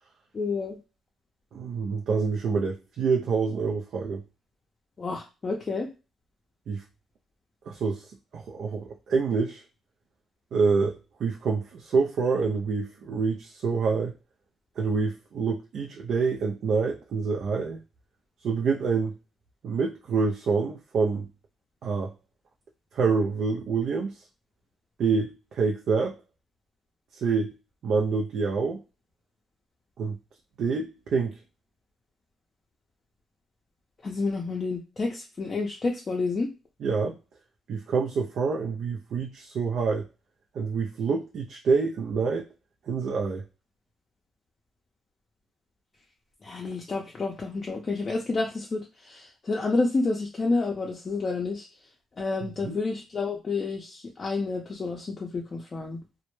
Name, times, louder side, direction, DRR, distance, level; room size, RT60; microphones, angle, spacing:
voice 1, 0.3-0.8 5.0-5.9 34.0-36.5 46.4-51.6 52.2-56.0, left 3 dB, 35° left, -1 dB, 0.5 m, -29 dB
voice 2, 1.5-4.2 6.7-6.8 7.7-8.0 8.3-9.6 10.5-14.1 14.8-17.8 18.4-19.1 19.6-21.3 21.8-22.1 22.9-24.2 25.0-26.1 27.1-27.5 27.8-28.8 30.0-30.2 30.6-31.4 36.8-37.2 37.7-40.0 40.6-42.4 42.9-43.4 52.4-52.8, right 5 dB, 65° right, 1 dB, 0.3 m, -27 dB
2.1 x 2.0 x 3.0 m, 0.30 s
cardioid pair, 90°, 0 cm